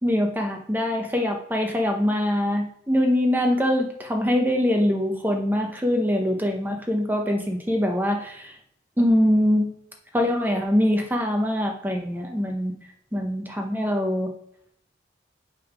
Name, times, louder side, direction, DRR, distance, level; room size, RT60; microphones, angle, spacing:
voice 1, 0.0-8.6 9.0-9.7 10.1-12.7 13.1-14.3, left 1 dB, 10° right, 2 dB, 0.7 m, -23 dB
7.5 x 3.6 x 4.9 m, 0.70 s
head